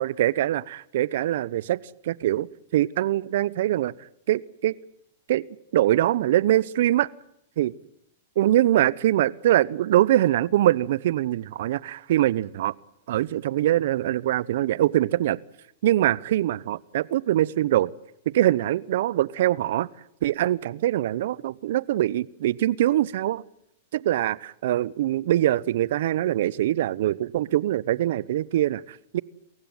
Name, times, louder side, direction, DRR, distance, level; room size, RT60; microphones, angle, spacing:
voice 1, 0.0-1.8 2.0-3.9 4.3-4.8 5.3-5.4 5.7-7.1 7.6-7.7 8.4-12.7 13.1-15.4 15.8-17.9 18.3-19.9 20.2-23.4 23.9-29.2, right 13 dB, 65° right, 22 dB, 0.9 m, -23 dB
28.0 x 15.5 x 9.2 m, 0.76 s
hypercardioid pair, 120°, 0 cm